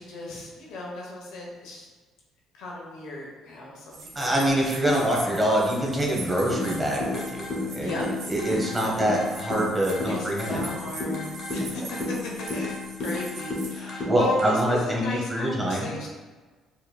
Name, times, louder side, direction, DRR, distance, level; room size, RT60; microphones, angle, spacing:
voice 1, 0.0-1.9 2.5-4.4 7.8-8.0 8.8-9.0 10.1-12.1 12.5-16.1, left 2 dB, 80° left, -3 dB, 1.0 m, -36 dB
sound 1, 3.9-13.8, right 3 dB, 85° right, 0.8 m, -42 dB
voice 2, 4.1-7.9 8.3-10.7 13.7-15.9, right 1 dB, 15° right, -3 dB, 1.0 m, -25 dB
sound 2, 6.5-14.5, left 2 dB, 50° left, 1.2 m, -32 dB
4.8 x 3.0 x 2.3 m, 1.4 s
cardioid pair, 95°, 0 cm